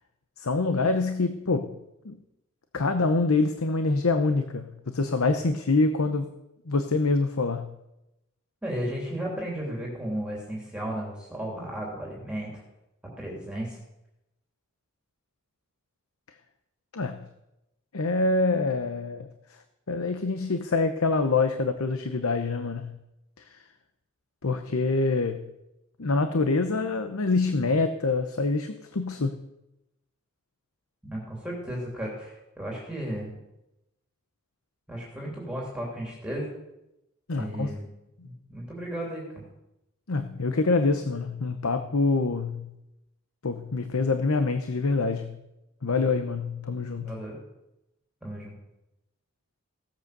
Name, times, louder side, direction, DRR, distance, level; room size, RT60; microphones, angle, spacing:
voice 1, 0.4-1.8 2.0-2.2 2.7-6.3 6.7-7.7 16.9-17.3 17.9-19.3 19.9-23.0 23.5-23.6 24.4-25.4 26.0-29.4 37.3-37.7 40.1-42.7 43.4-45.4 45.8-47.1, left 3 dB, 75° left, 8 dB, 0.8 m, -25 dB
voice 2, 8.6-12.5 13.2-13.8 31.1-33.3 34.9-36.5 37.4-37.9 38.2-39.4 47.0-47.4 48.2-48.5, right 1 dB, 5° right, -3 dB, 3.1 m, -34 dB
16.5 x 8.0 x 6.7 m, 0.92 s
head